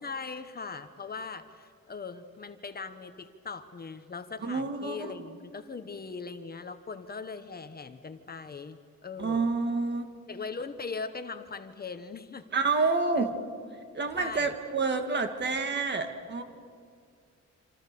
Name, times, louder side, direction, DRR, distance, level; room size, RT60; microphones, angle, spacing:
voice 1, 0.0-9.5 10.3-12.4 12.8-13.4 14.2-14.5, left 4 dB, 30° left, 9 dB, 1.0 m, -40 dB
voice 2, 4.4-5.2 9.2-10.1 12.5-13.3 13.9-16.4, right 4 dB, 35° right, 6 dB, 2.0 m, -28 dB
27.0 x 26.5 x 6.9 m, 2.2 s
wide cardioid pair, 175°, 29 cm